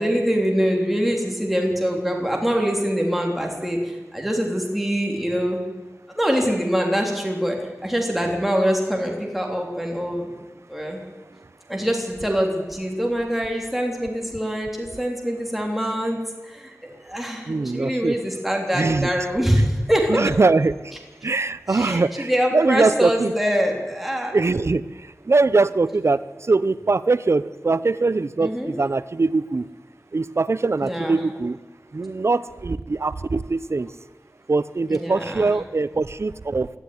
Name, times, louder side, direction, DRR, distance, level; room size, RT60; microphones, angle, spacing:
voice 1, 0.0-3.8 4.1-5.6 6.1-7.6 7.8-10.3 10.7-11.0 11.7-16.2 16.5-20.3 21.7-24.3 28.4-28.7 30.8-31.2 34.9-35.5, equal, 5° right, 1 dB, 3.4 m, -24 dB
voice 2, 17.5-18.2 18.7-19.1 20.1-21.0 21.2-23.3 24.3-29.7 30.1-31.6 31.9-33.9 34.5-36.7, right 3 dB, 55° right, 14 dB, 0.7 m, -22 dB
20.5 x 13.0 x 9.7 m, 1.3 s
wide cardioid pair, 80°, 6 cm